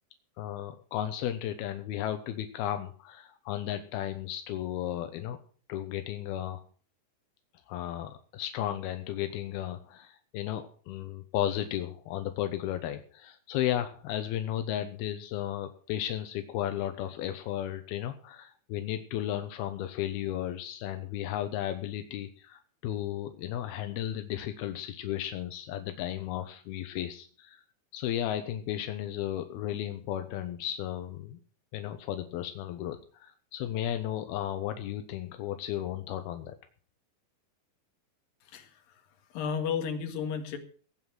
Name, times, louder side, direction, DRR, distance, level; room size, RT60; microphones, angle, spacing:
voice 1, 0.4-5.4 5.7-6.6 7.7-27.6 27.9-31.4 31.7-36.6, left 12 dB, 85° left, 8 dB, 2.9 m, -34 dB
voice 2, 38.5-38.8 39.3-40.6, left 6 dB, 70° left, 6 dB, 3.5 m, -32 dB
17.0 x 9.2 x 6.1 m, 0.43 s
omnidirectional pair, 4.4 m